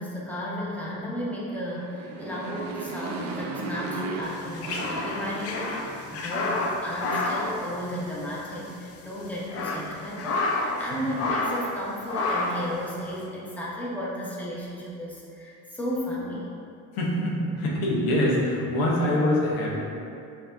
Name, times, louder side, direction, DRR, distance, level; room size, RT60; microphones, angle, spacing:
voice 1, 0.0-16.5, equal, 5° left, -6 dB, 0.9 m, -34 dB
Motorcycle, 1.7-6.3, right 3 dB, 40° right, 0.5 m, -36 dB
sound 1, 4.3-8.4 8.6-8.8 9.3-10.9 11.1-11.7 12.1-12.7, left 2 dB, 35° left, 0.5 m, -29 dB
voice 2, 17.0-19.8, left 1 dB, 85° left, -4 dB, 0.9 m, -24 dB
5.4 x 2.8 x 2.4 m, 2.5 s
supercardioid pair, 80°, 42 cm